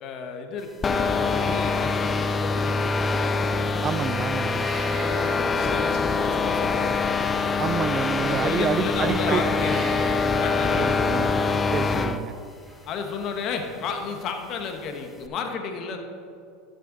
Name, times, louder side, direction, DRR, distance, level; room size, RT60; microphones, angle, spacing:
voice 1, 0.0-3.3 4.9-6.9 7.2-7.4 8.2-10.1 10.4-11.1 12.9-16.0, left 5 dB, 50° left, 5 dB, 1.3 m, -33 dB
sound 1, 0.8-12.2, left 4 dB, 25° left, 0.5 m, -24 dB
sound 2, 3.3-6.3 7.9-9.0 9.5-10.8 12.3-13.4, right 2 dB, 15° right, 2.6 m, -44 dB
voice 2, 3.8-4.7 7.6-9.4 10.8-11.3 11.7-12.3, right 8 dB, 35° right, 16 dB, 0.3 m, -28 dB
13.5 x 6.6 x 4.0 m, 2.3 s
supercardioid pair, 100°, 0 cm